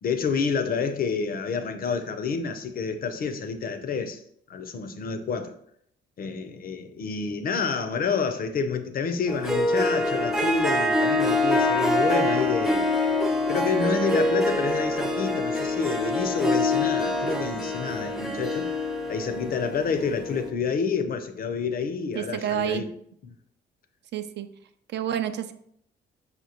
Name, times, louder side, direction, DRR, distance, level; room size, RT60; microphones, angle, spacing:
voice 1, 0.0-4.2 4.5-5.5 6.2-12.9 13.5-18.7 19.1-22.9, left 5 dB, 50° left, 0.5 m, -28 dB
Harp, 9.3-20.5, left 1 dB, ahead, 0.5 m, -25 dB
voice 2, 22.1-22.9 24.1-24.5 24.9-25.5, right 10 dB, 60° right, 0.4 m, -29 dB
5.0 x 2.6 x 2.9 m
cardioid pair, 90°, 20 cm